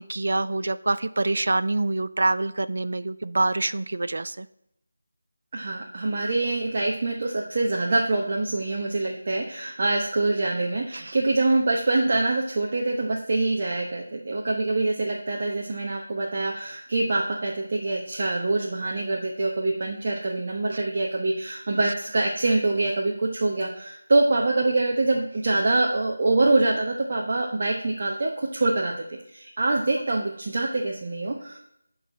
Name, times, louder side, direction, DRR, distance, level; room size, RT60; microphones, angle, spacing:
voice 1, 0.0-4.5 10.9-11.2, right 2 dB, 60° right, 14 dB, 0.3 m, -26 dB
voice 2, 5.5-31.6, right 2 dB, 45° right, 0 dB, 0.9 m, -25 dB
11.0 x 4.0 x 4.3 m, 0.77 s
figure-of-eight pair, 165°, 0 cm